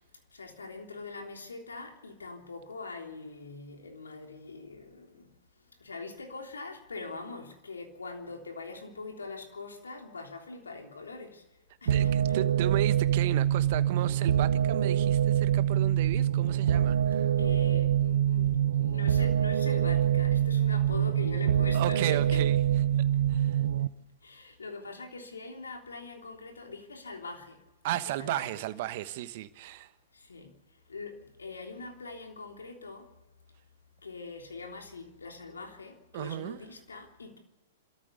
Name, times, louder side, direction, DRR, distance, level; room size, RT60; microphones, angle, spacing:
voice 1, 0.3-5.3 5.6-11.4 11.8-12.4 17.4-22.4 24.2-27.6 27.9-28.5 30.1-30.6 30.9-33.1 34.0-37.4, left 3 dB, 85° left, 3.4 m, -43 dB
voice 2, 11.8-17.3 21.7-22.6 23.3-23.6 27.8-29.9 36.1-36.6, right 14 dB, 50° right, 1.2 m, -34 dB
sound 1, 11.9-23.9, right 10 dB, 70° right, 0.7 m, -25 dB
27.5 x 14.0 x 6.9 m
hypercardioid pair, 115°, 0 cm